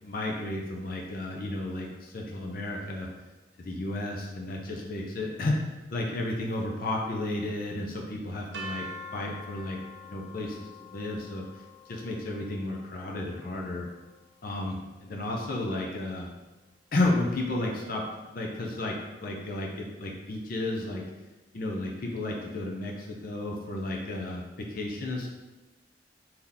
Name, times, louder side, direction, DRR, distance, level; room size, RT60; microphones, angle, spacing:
voice 1, 0.0-3.1 3.6-5.5 5.9-8.9 9.1-9.8 10.0-11.6 11.9-13.9 14.4-16.3 16.9-18.0 18.3-19.0 19.2-21.0 21.5-24.4 24.7-25.3, left 2 dB, 55° left, -1 dB, 0.6 m, -32 dB
sound 1, 8.5-14.5, left 1 dB, 75° right, 0.8 m, -45 dB
3.8 x 2.8 x 3.5 m, 1.2 s
head